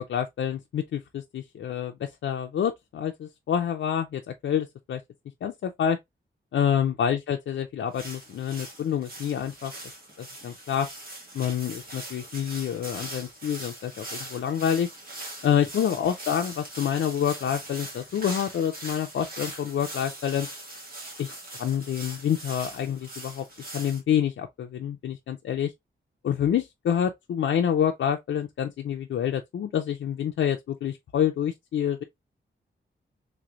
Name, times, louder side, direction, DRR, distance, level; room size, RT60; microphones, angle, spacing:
voice 1, 0.0-5.0 5.4-6.0 6.5-9.7 10.2-10.9 11.3-14.9 15.4-20.5 21.2-23.4 23.7-25.7 26.2-32.0, left 9 dB, 75° left, 0.4 m, -27 dB
sound 1, 7.9-24.0, right 1 dB, 45° right, 1.4 m, -41 dB
3.3 x 3.1 x 2.3 m
wide cardioid pair, 165°, 20 cm